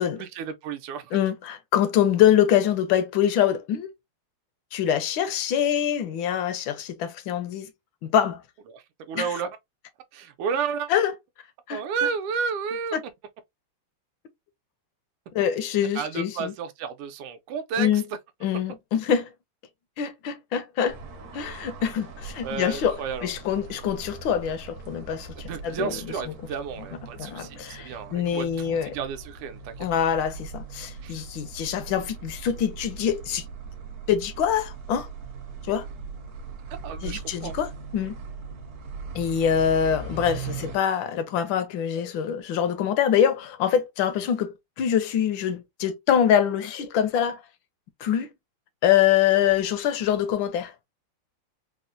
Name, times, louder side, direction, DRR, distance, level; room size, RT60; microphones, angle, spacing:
voice 1, 0.2-1.1 8.7-9.5 10.1-10.9 11.7-12.9 15.9-17.9 22.4-23.3 25.5-29.9 31.0-31.1 36.8-37.6, right 6 dB, 85° right, 1.5 m, -32 dB
voice 2, 1.1-3.9 4.7-7.7 8.0-8.4 9.1-9.3 10.9-11.1 11.7-11.8 12.9-13.0 15.3-16.5 17.8-18.0 18.4-19.3 20.0-21.0 21.3-26.0 27.2-28.9 29.8-33.4 34.1-35.1 35.7-35.8 37.0-38.1 39.1-44.5 44.8-47.4 48.0-48.3 48.8-50.7, left 9 dB, 75° left, 1.2 m, -24 dB
sound 1, 20.9-40.8, right 4 dB, 60° right, 1.0 m, -40 dB
4.1 x 2.1 x 2.5 m
omnidirectional pair, 2.4 m